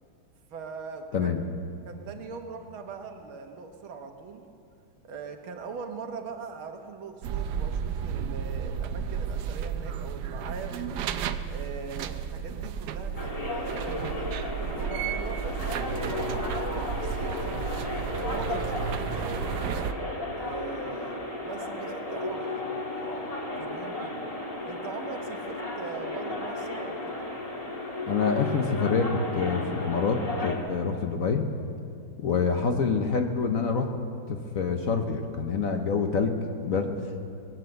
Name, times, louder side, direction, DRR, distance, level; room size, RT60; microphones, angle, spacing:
voice 1, 0.5-1.3 1.9-4.5 5.1-11.0 11.5-14.3 14.6-15.8 16.1-17.4 18.0-19.7 20.4-24.2 24.7-27.3, right 5 dB, 90° right, 4 dB, 2.0 m, -41 dB
sound 1, 7.2-19.9, right 7 dB, 70° right, 1.1 m, -33 dB
sound 2, 13.2-30.6, left 2 dB, 20° left, 1.7 m, -34 dB
voice 2, 28.1-31.5 32.2-33.9 34.3-36.4 36.6-36.9, left 5 dB, 55° left, 5 dB, 1.1 m, -26 dB
20.5 x 9.0 x 7.7 m, 2.6 s
omnidirectional pair, 2.2 m